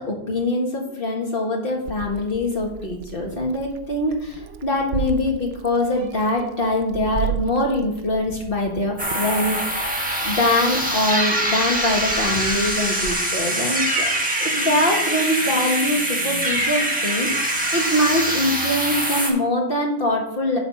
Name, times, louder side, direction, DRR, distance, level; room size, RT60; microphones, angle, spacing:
voice 1, 0.0-14.1 14.4-20.6, left 1 dB, 45° left, 0 dB, 1.8 m, -23 dB
Meow, 1.8-13.1, right 8 dB, 65° right, 0.8 m, -35 dB
sound 1, 9.0-19.3, right 1 dB, 5° right, 1.3 m, -23 dB
10.5 x 4.0 x 5.6 m, 0.82 s
omnidirectional pair, 1.3 m